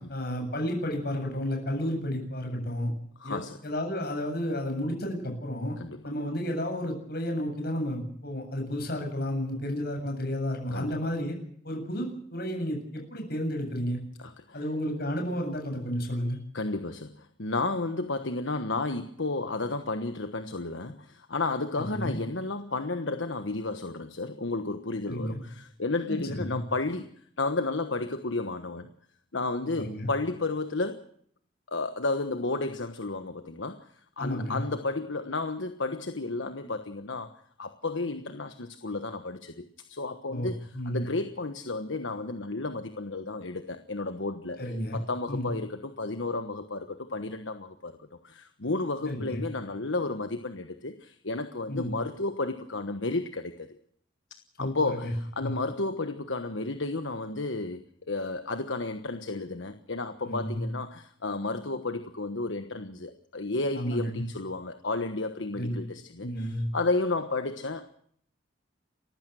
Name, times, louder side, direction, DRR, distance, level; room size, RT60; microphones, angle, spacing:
voice 1, 0.0-2.9 3.2-5.7 6.0-11.4 11.6-14.0 14.5-16.4 21.8-22.2 25.1-25.4 26.1-26.6 29.8-30.1 34.2-34.6 40.3-40.5 40.7-41.0 44.6-45.0 45.3-45.5 49.0-49.4 51.7-51.9 54.6-55.1 55.4-55.5 60.2-60.6 63.7-64.2 65.5-65.8 66.2-66.7, equal, 50° left, 3 dB, 7.8 m, -32 dB
voice 2, 3.2-3.6 5.8-6.0 10.7-11.1 14.2-14.6 16.5-28.9 29.3-31.0 31.7-33.9 34.2-37.3 37.6-44.6 44.9-48.0 48.2-53.8 54.6-67.8, left 3 dB, 75° left, 8 dB, 1.3 m, -32 dB
29.0 x 15.5 x 6.3 m, 0.64 s
head